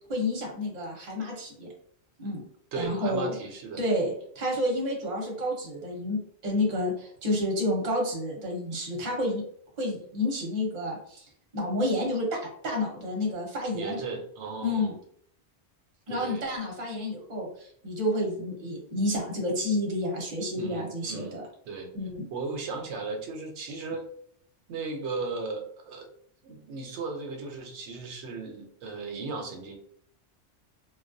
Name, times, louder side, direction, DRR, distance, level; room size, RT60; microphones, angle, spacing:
voice 1, 0.1-1.7 2.2-2.4 2.7-3.3 3.8-9.4 9.8-11.2 11.5-14.0 14.6-15.0 16.1-21.4 21.9-22.3, left 1 dB, 40° right, -1 dB, 0.8 m, -30 dB
voice 2, 2.7-3.8 13.7-14.9 16.1-16.4 20.5-21.4 21.7-21.9 22.3-24.1 24.7-26.1 26.4-29.8, right 4 dB, 75° right, 3 dB, 0.8 m, -36 dB
2.3 x 2.1 x 2.5 m, 0.63 s
omnidirectional pair, 1.2 m